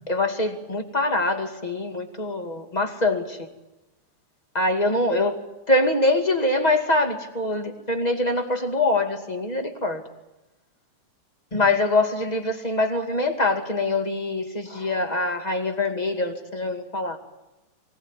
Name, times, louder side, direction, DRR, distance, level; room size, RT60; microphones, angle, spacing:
voice 1, 0.1-3.5 4.5-5.4 5.7-10.0 11.5-17.2, left 2 dB, 15° left, 5 dB, 2.0 m, -24 dB
25.0 x 18.5 x 10.0 m, 1.0 s
omnidirectional pair, 3.6 m